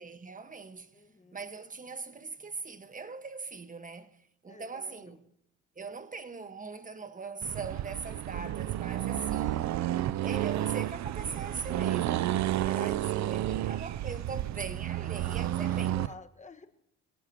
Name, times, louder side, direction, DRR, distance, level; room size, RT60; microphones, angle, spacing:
voice 1, 0.0-1.0 1.3-4.2 4.4-5.3 5.8-9.6 10.2-16.0, right 4 dB, 25° right, 1.5 m, -41 dB
voice 2, 0.9-1.4 4.5-5.2 8.9-9.5 12.6-13.5 15.4-16.7, left 3 dB, 25° left, 1.6 m, -51 dB
Accelerating revving vroom, 7.4-16.1, right 13 dB, 65° right, 0.6 m, -31 dB
26.0 x 17.5 x 3.0 m
cardioid pair, 90°, 30 cm